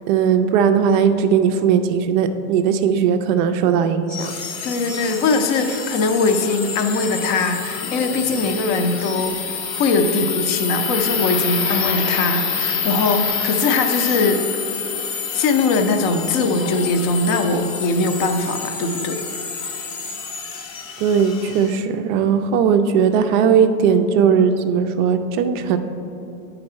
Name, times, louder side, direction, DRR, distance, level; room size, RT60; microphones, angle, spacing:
voice 1, 0.1-4.3 21.0-25.8, right 7 dB, 35° right, 8 dB, 0.4 m, -18 dB
sound 1, 4.1-21.8, left 5 dB, 70° left, 1.0 m, -27 dB
voice 2, 4.6-9.4 9.7-14.4 15.3-19.2, left 3 dB, 40° left, 6 dB, 0.7 m, -21 dB
9.6 x 3.9 x 4.4 m, 3.0 s
hypercardioid pair, 120°, 43 cm